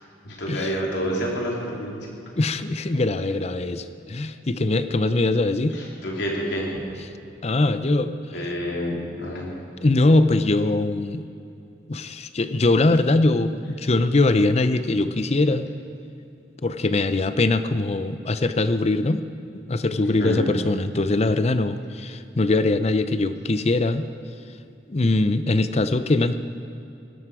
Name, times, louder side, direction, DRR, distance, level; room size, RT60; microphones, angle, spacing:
voice 1, 0.2-2.2 5.7-6.7 8.3-9.6 20.2-20.5, equal, 75° left, -2 dB, 3.2 m, -28 dB
voice 2, 2.4-5.8 7.4-8.1 9.8-11.2 11.9-15.7 16.6-19.2 19.7-24.1 24.9-26.4, left 2 dB, 35° left, 11 dB, 0.6 m, -22 dB
17.5 x 12.5 x 4.9 m, 2.7 s
head